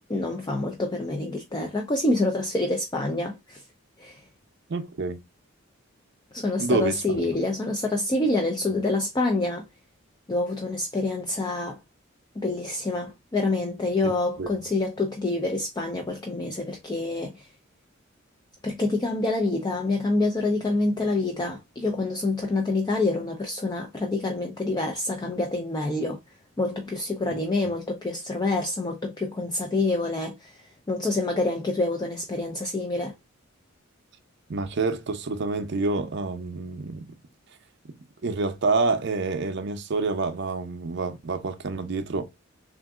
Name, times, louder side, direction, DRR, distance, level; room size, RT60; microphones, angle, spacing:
voice 1, 0.0-3.6 4.0-4.2 6.3-9.7 10.3-11.8 12.4-17.5 18.6-26.2 26.6-30.6 30.9-33.1, left 2 dB, 20° left, 0.4 m, -27 dB
voice 2, 4.7-5.2 6.6-7.2 14.0-14.1 14.4-14.5 34.5-37.1 38.2-42.3, right 3 dB, 55° right, 0.5 m, -27 dB
3.6 x 2.5 x 2.2 m
head